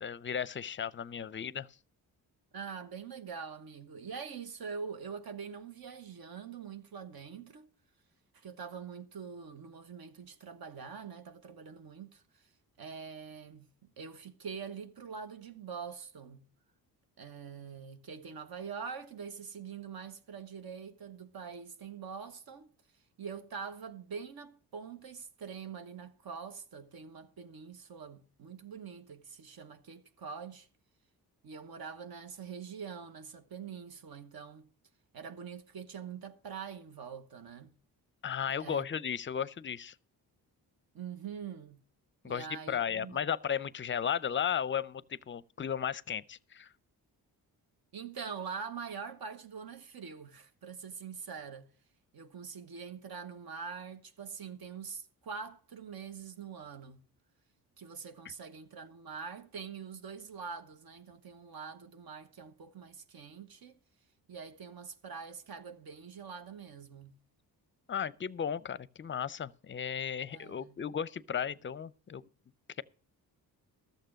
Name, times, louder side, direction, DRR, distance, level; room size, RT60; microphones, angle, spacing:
voice 1, 0.0-1.7 38.2-39.9 42.2-46.7 67.9-72.3, left 8 dB, 30° left, 0.5 m, -35 dB
voice 2, 2.5-7.7 8.3-12.5 12.8-13.7 14.0-16.4 17.2-22.7 23.2-30.7 31.4-34.7 35.1-37.7 38.6-38.9 40.9-41.8 42.2-43.2 47.9-51.7 52.1-57.0 57.8-63.8 64.3-67.2 70.3-70.8, right 6 dB, 60° right, 1.1 m, -44 dB
13.0 x 6.7 x 6.3 m
supercardioid pair, 55°, 41 cm